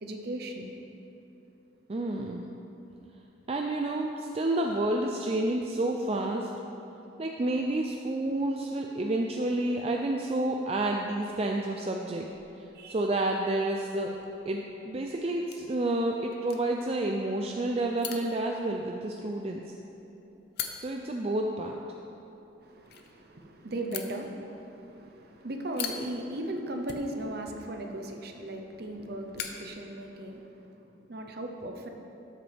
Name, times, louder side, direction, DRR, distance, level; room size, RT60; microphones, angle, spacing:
voice 1, 0.0-0.7 12.7-13.1 22.6-31.9, right 1 dB, 50° right, 3 dB, 0.8 m, -37 dB
voice 2, 1.9-2.5 3.5-6.5 7.2-12.3 12.6-14.1 14.5-19.6 20.8-21.8, right 1 dB, 30° right, 1 dB, 0.4 m, -30 dB
sound 1, 10.9-30.5, left 8 dB, 55° left, 0.6 m, -46 dB
13.0 x 7.7 x 3.5 m, 2.9 s
head